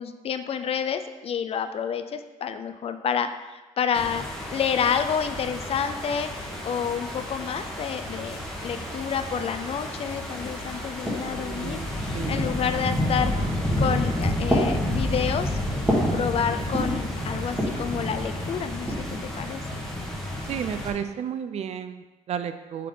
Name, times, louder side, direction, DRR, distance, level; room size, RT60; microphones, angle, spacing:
voice 1, 0.0-6.3 6.6-11.8 12.0-13.3 13.8-15.5 16.1-18.9 19.2-19.6, left 7 dB, 45° left, 9 dB, 0.4 m, -29 dB
sound 1, 3.9-20.9, left 1 dB, 5° left, 1.2 m, -30 dB
sound 2, 10.4-11.5 12.3-12.8 13.7-14.0 14.5-16.2 16.5-17.1 17.5-17.9 18.6-19.6, equal, 15° right, 1.7 m, -29 dB
voice 2, 11.4-12.5 20.5-22.9, right 8 dB, 50° right, 10 dB, 0.4 m, -33 dB
7.5 x 3.7 x 3.9 m, 1.2 s
cardioid pair, 120°, 14 cm